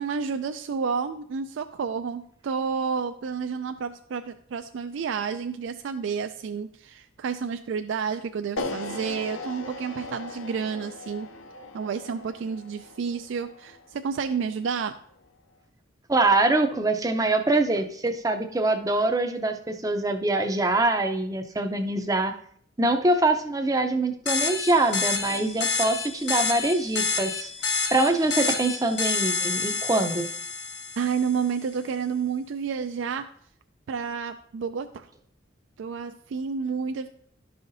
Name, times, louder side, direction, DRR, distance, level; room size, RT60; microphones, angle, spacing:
voice 1, 0.0-11.3 11.7-15.0 31.0-33.2 33.9-35.1 35.8-37.1, right 6 dB, 70° right, 8 dB, 0.3 m, -30 dB
sound 1, 8.6-14.7, left 2 dB, 80° left, 0.6 m, -38 dB
voice 2, 16.1-22.3 22.8-27.5 27.9-30.3, right 2 dB, 15° right, 6 dB, 0.5 m, -24 dB
sound 2, 24.3-31.4, left 5 dB, 55° left, 0.9 m, -29 dB
11.5 x 5.6 x 2.6 m, 0.64 s
head